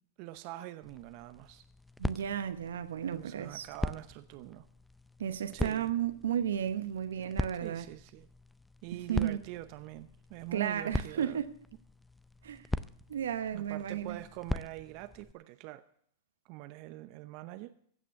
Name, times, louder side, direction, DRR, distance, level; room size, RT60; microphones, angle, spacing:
voice 1, 0.2-1.6 3.2-4.7 5.5-5.9 7.6-8.3 8.8-11.4 13.5-15.8 16.5-17.7, right 16 dB, 50° right, 0.7 m, -44 dB
sound 1, 0.8-15.3, left 1 dB, 5° left, 0.6 m, -41 dB
voice 2, 2.0-3.7 5.2-7.9 8.9-9.4 10.5-11.5 12.4-12.6 13.1-14.2, right 9 dB, 80° right, 1.0 m, -33 dB
15.5 x 6.1 x 8.7 m
hypercardioid pair, 115°, 0 cm